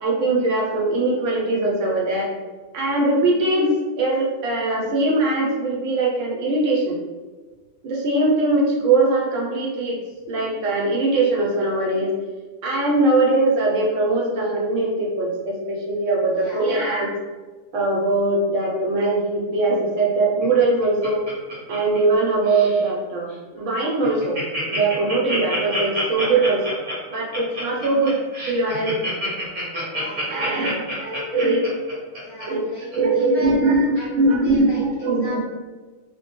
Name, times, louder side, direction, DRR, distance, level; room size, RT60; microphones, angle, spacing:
voice 1, 0.0-2.3 2.7-7.0 7.8-10.0 10.3-12.2 12.6-17.1 17.7-21.2 21.7-24.4 24.7-26.6 27.1-28.2 28.5-29.0 30.3-31.6 32.5-32.6 32.9-35.4, right 2 dB, 70° right, -3 dB, 0.9 m, -21 dB
Laughter, 20.4-22.2 22.4-22.8 23.3-23.4 23.7-23.8 24.0-32.4 32.9-33.0, equal, 40° right, 0.8 m, -28 dB
voice 2, 29.9-30.3 31.1-31.3 32.2-34.8 35.2-35.4, equal, 55° left, -6 dB, 0.8 m, -36 dB
2.3 x 2.1 x 2.8 m, 1.3 s
omnidirectional pair, 1.4 m